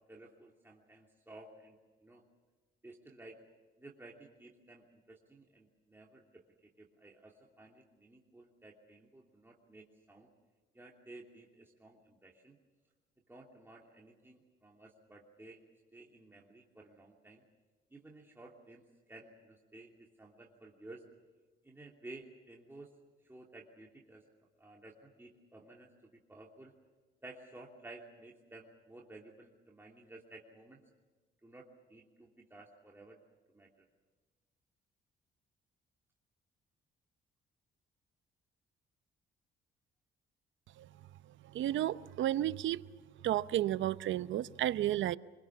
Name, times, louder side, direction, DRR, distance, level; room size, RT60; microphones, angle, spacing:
voice 1, 0.1-2.2 2.8-3.4 3.8-10.3 10.7-12.6 13.3-15.6 15.9-17.4 17.9-21.0 21.6-22.9 23.2-24.2 24.6-25.9 26.3-26.7 27.2-30.8 31.4-33.2 33.5-33.9, right 2 dB, 10° right, 2.9 m, -54 dB
voice 2, 41.4-42.8 43.2-45.2, right 13 dB, 75° right, 0.7 m, -32 dB
25.0 x 23.0 x 7.2 m
cardioid pair, 90°, 20 cm